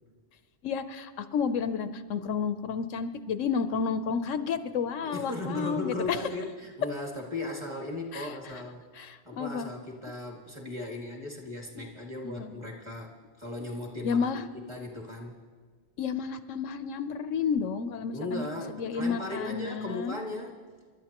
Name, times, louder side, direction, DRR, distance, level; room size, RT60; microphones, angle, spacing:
voice 1, 0.6-6.2 8.1-8.3 8.9-9.7 12.4-12.6 14.0-14.4 16.0-18.4 18.8-20.1, left 6 dB, 80° left, 10 dB, 1.0 m, -31 dB
voice 2, 5.0-8.8 9.2-13.1 13.4-15.4 18.1-20.5, left 2 dB, 20° right, -1 dB, 2.0 m, -37 dB
29.0 x 12.5 x 3.0 m, 1.5 s
omnidirectional pair, 1.3 m